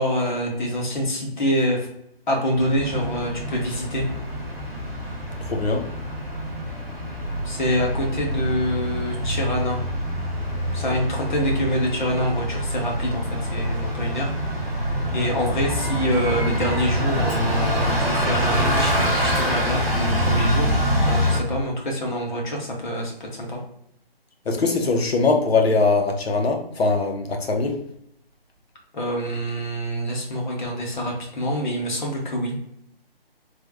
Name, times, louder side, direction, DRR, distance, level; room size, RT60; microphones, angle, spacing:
voice 1, 0.0-1.9 2.3-4.1 7.4-9.8 10.7-14.3 15.1-20.7 21.1-23.6 28.9-32.6, equal, 50° left, 0 dB, 1.1 m, -26 dB
Bus, 2.5-21.4, equal, 10° right, 0.7 m, -25 dB
voice 2, 5.4-5.9 24.5-27.8, left 3 dB, 85° left, 3 dB, 0.9 m, -21 dB
3.4 x 2.1 x 3.2 m, 0.74 s
hypercardioid pair, 165°, 30 cm